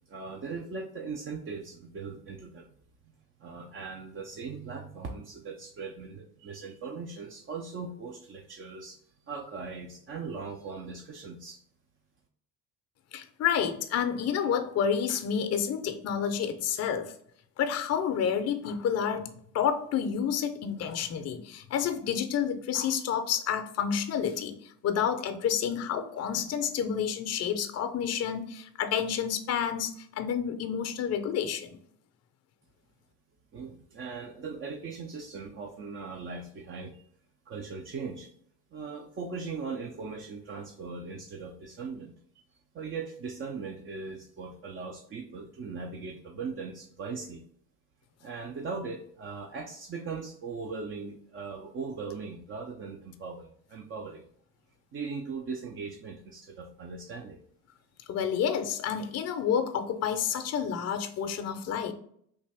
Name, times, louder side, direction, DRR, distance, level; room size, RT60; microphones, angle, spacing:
voice 1, 0.1-2.7 3.4-11.6 33.5-37.0 37.5-38.3 38.7-42.1 42.7-47.4 48.2-54.2 54.9-57.4, right 4 dB, 30° right, 2 dB, 0.4 m, -39 dB
voice 2, 13.1-17.1 17.6-19.3 19.5-31.8 58.1-61.9, left 8 dB, 35° left, 7 dB, 0.5 m, -29 dB
3.3 x 2.5 x 3.4 m, 0.64 s
supercardioid pair, 75°, 44 cm